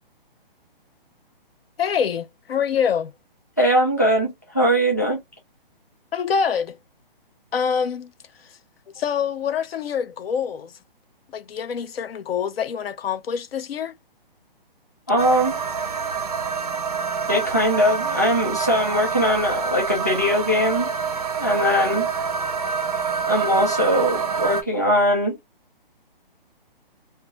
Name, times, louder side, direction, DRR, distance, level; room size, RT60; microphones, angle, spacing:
voice 1, 1.8-3.1 6.1-6.8 7.5-8.1 9.0-10.7 11.3-13.9, left 7 dB, 90° left, 0.5 m, -25 dB
voice 2, 3.6-5.2 15.1-15.6 17.3-20.9 21.4-22.1 23.3-25.4, equal, 20° left, 0.4 m, -21 dB
sound 1, 15.2-24.6, right 6 dB, 40° right, 0.4 m, -26 dB
2.3 x 2.2 x 3.0 m
hypercardioid pair, 175°, 29 cm